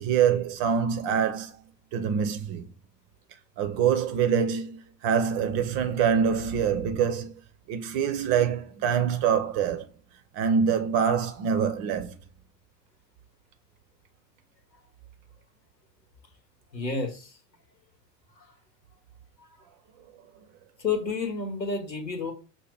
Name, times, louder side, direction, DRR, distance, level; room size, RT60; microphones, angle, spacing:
voice 1, 0.0-1.6 1.9-2.7 3.6-7.3 7.7-9.9 10.3-12.1, right 7 dB, 30° right, 0.4 m, -25 dB
voice 2, 16.7-17.3 18.4-18.5 20.8-22.3, left 4 dB, 90° left, 1.1 m, -30 dB
5.6 x 2.1 x 3.3 m
figure-of-eight pair, 85°, 50 cm